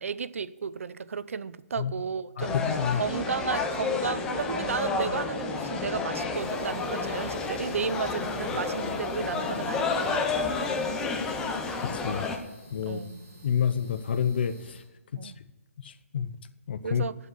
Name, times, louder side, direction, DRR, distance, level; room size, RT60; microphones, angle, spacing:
voice 1, 0.0-2.6 2.9-10.3 12.8-13.2 15.1-15.4 16.8-17.2, right 6 dB, 65° right, 0.6 m, -33 dB
voice 2, 2.4-3.0 11.9-12.3 12.7-13.0 13.4-14.8 15.2-15.3 15.8-16.3 16.7-17.0, left 7 dB, 40° left, 0.7 m, -28 dB
sound 1, 2.4-12.4, left 4 dB, 5° left, 0.6 m, -30 dB
sound 2, 6.3-14.8, right 1 dB, 15° right, 4.3 m, -51 dB
15.0 x 5.5 x 8.3 m
hypercardioid pair, 170°, 8 cm